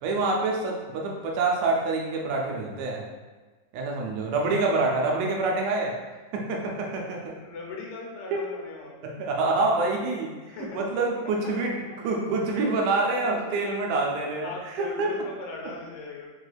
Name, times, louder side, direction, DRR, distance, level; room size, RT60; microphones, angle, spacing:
voice 1, 0.0-3.1 3.7-6.0 6.3-7.4 8.3-8.4 9.0-11.8 12.0-15.1, right 3 dB, 80° right, -1 dB, 2.0 m, -26 dB
voice 2, 7.4-9.2 10.5-11.1 11.8-12.2 13.4-13.5 14.4-16.3, left 3 dB, 80° left, -2 dB, 2.1 m, -39 dB
5.1 x 3.2 x 2.3 m, 1.3 s
omnidirectional pair, 3.6 m